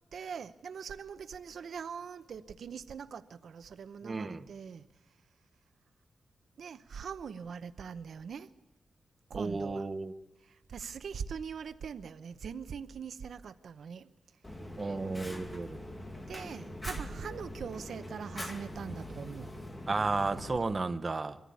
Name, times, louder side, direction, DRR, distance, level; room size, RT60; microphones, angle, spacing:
voice 1, 0.1-4.9 6.6-8.5 9.3-9.9 10.7-14.1 16.3-19.5, right 6 dB, 80° right, 12 dB, 0.8 m, -42 dB
voice 2, 4.0-4.5 9.3-10.1 14.8-15.8 19.9-21.4, right 3 dB, 30° right, 9 dB, 0.9 m, -33 dB
Fire, 14.4-20.6, left 1 dB, 15° left, 2.2 m, -43 dB
23.5 x 14.5 x 8.5 m, 1.0 s
wide cardioid pair, 145°, 0 cm